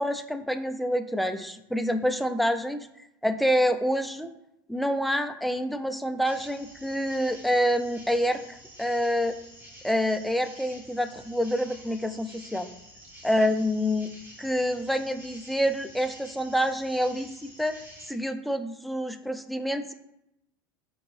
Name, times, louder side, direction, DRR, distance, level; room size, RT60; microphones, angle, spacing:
voice 1, 0.0-2.9 3.2-4.3 4.7-9.4 9.8-12.7 13.2-14.1 14.4-17.7 18.1-19.9, equal, ahead, 7 dB, 0.3 m, -27 dB
sound 1, 6.2-18.1, equal, 15° right, 1.5 m, -49 dB
4.6 x 3.7 x 3.1 m, 0.84 s
hypercardioid pair, 85°, 12 cm